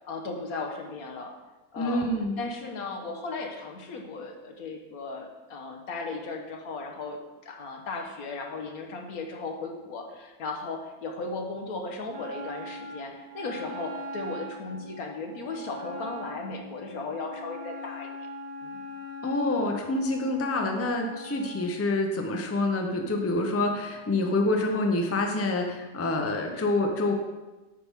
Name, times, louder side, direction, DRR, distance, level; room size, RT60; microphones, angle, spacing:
voice 1, 0.0-1.3 1.7-2.1 2.4-18.1 18.6-18.8, left 3 dB, 90° left, 2 dB, 1.5 m, -36 dB
voice 2, 1.8-2.5 19.2-27.1, left 2 dB, 15° left, 2 dB, 0.4 m, -27 dB
Wind instrument woodwind instrument, 12.1-21.7, equal, 70° right, 1.7 m, -41 dB
8.5 x 5.8 x 3.6 m, 1.1 s
omnidirectional pair, 1.5 m